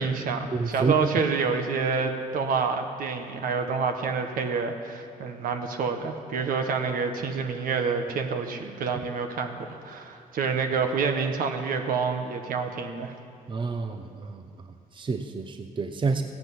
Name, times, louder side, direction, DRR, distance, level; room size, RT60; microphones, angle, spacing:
voice 1, 0.0-13.2, right 5 dB, 70° right, 5 dB, 1.5 m, -28 dB
voice 2, 0.5-1.1 13.5-14.4 14.9-16.2, right 4 dB, 35° right, 6 dB, 0.8 m, -28 dB
15.0 x 10.5 x 8.4 m, 2.5 s
cardioid pair, 95°, 15 cm